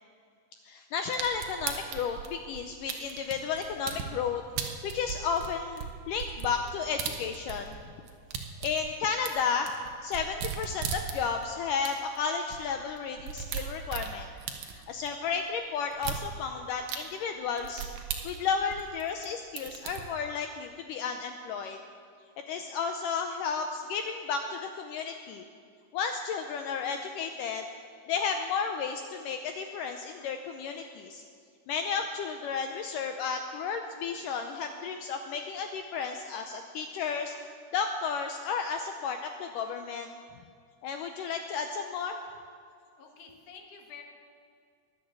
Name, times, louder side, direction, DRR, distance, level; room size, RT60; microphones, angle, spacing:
voice 1, 0.6-4.4 4.8-7.8 8.6-9.7 10.0-14.3 14.7-17.8 18.2-21.8 22.5-25.4 25.9-27.6 28.1-31.2 31.7-37.4 37.7-40.1 40.8-42.2, left 6 dB, 85° left, 5 dB, 1.9 m, -33 dB
sound 1, 1.1-4.1 4.6-7.8 8.0-11.5 11.9-12.0 12.2-12.3 12.5-12.6 13.0-15.1 15.9-16.2 16.9-17.0 17.6-19.3 19.6-20.0, right 8 dB, 70° right, 2.7 m, -37 dB
voice 2, 43.0-44.0, left 6 dB, 60° left, 3 dB, 2.8 m, -49 dB
22.0 x 8.1 x 7.5 m, 2.2 s
omnidirectional pair, 4.6 m